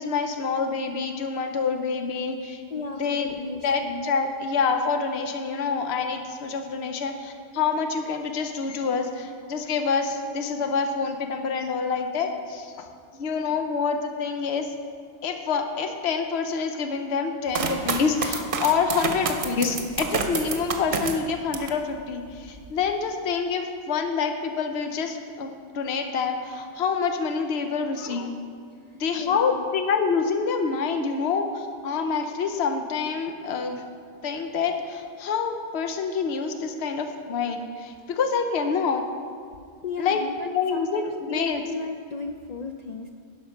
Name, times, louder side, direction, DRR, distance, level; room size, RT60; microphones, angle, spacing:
voice 1, 0.0-2.6 3.0-3.3 3.6-12.9 13.1-14.7 15.2-28.3 28.9-33.8 34.2-39.0 40.0-41.6, left 5 dB, 75° left, 6 dB, 1.0 m, -27 dB
voice 2, 2.7-4.1 28.9-29.7 39.8-43.1, left 4 dB, 55° left, 4 dB, 0.4 m, -35 dB
sound 1, 17.5-21.8 22.3-22.9, right 4 dB, 55° right, 0.9 m, -29 dB
11.0 x 5.7 x 5.7 m, 2.2 s
omnidirectional pair, 1.1 m